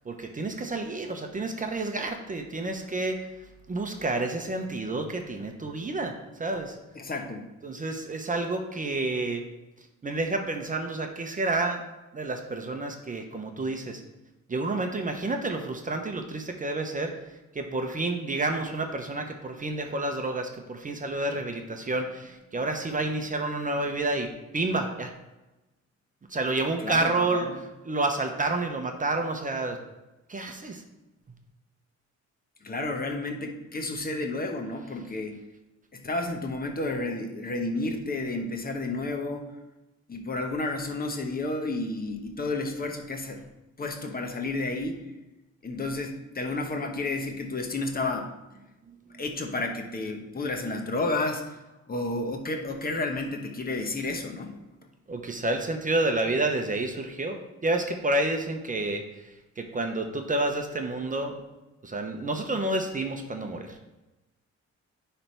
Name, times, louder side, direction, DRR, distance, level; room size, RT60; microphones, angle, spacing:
voice 1, 0.0-3.3 3.7-6.8 7.6-9.4 10.0-11.8 12.1-14.0 14.5-25.1 26.3-27.5 27.8-29.8 30.3-30.8 55.1-61.4 61.8-63.8, right 2 dB, 25° right, 4 dB, 0.8 m, -29 dB
voice 2, 6.9-7.4 26.8-27.1 27.4-27.5 32.6-35.4 35.9-39.6 40.1-43.4 43.8-45.0 45.6-48.3 49.2-51.6 51.9-54.6, left 2 dB, 30° left, 3 dB, 1.0 m, -31 dB
10.0 x 3.5 x 4.5 m, 1.0 s
cardioid pair, 90°, 30 cm